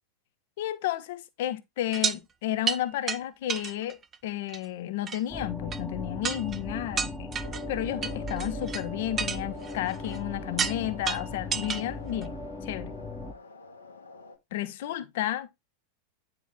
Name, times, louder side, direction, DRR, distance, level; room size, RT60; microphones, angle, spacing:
voice 1, 0.6-7.3 7.7-12.4 12.6-12.9 14.5-15.5, left 13 dB, 50° left, 0.9 m, -32 dB
sound 1, 1.9-2.2 2.7-2.8 3.1-3.2 3.5-4.2 4.5-4.6 5.1-5.2 5.7-5.8 6.2-6.6 7.0-7.6 8.0-8.8 9.2-10.2 10.6-10.8 11.1-11.8 12.2-12.3, right 6 dB, 25° right, 0.5 m, -30 dB
sound 2, 5.3-13.3, left 2 dB, 5° left, 1.0 m, -38 dB
sound 3, 7.4-14.4, left 3 dB, 75° left, 1.5 m, -46 dB
9.2 x 4.5 x 3.7 m
figure-of-eight pair, 90°, 0 cm